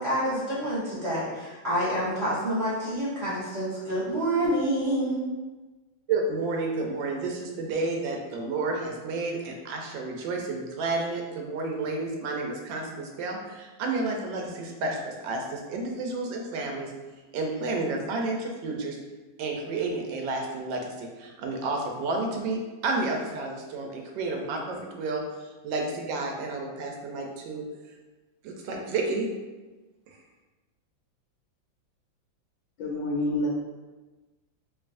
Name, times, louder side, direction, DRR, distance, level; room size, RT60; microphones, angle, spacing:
voice 1, 0.0-5.2, right 1 dB, 40° right, -8 dB, 1.0 m, -27 dB
voice 2, 6.1-16.9 17.3-19.0 19.4-27.6 28.4-29.3 30.1-30.2, right 3 dB, 75° right, 1 dB, 1.3 m, -31 dB
voice 3, 32.8-33.5, left 1 dB, 75° left, -5 dB, 1.3 m, -27 dB
4.6 x 2.7 x 2.5 m, 1.2 s
omnidirectional pair, 2.2 m